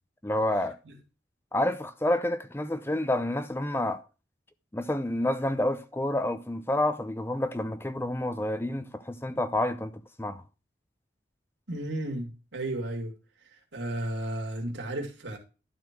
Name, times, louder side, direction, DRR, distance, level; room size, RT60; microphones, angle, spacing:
voice 1, 0.2-0.8 1.5-4.0 4.7-9.9 10.2-10.4, left 1 dB, 15° left, 0.6 m, -29 dB
voice 2, 11.7-13.2 13.7-15.4, right 1 dB, 85° right, 2.6 m, -33 dB
12.0 x 4.3 x 6.1 m
head